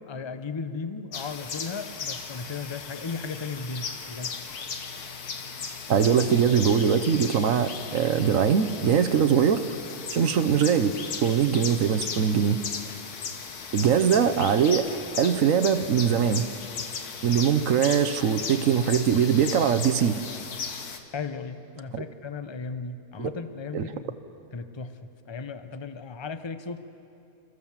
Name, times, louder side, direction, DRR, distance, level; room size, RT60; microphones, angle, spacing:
voice 1, 0.1-4.4 10.2-10.4 21.1-24.2 24.5-25.0 25.3-26.8, left 4 dB, 35° left, 10 dB, 0.4 m, -36 dB
sound 1, 1.1-21.0, left 5 dB, 70° left, 1.7 m, -36 dB
voice 2, 5.9-9.7 10.1-10.9 11.2-12.6 13.7-14.9 15.2-16.4 17.2-20.2 21.9-22.0 23.2-23.3 23.7-23.8, right 7 dB, 60° right, 9 dB, 1.1 m, -22 dB
28.0 x 14.5 x 7.3 m, 2.8 s
omnidirectional pair, 1.7 m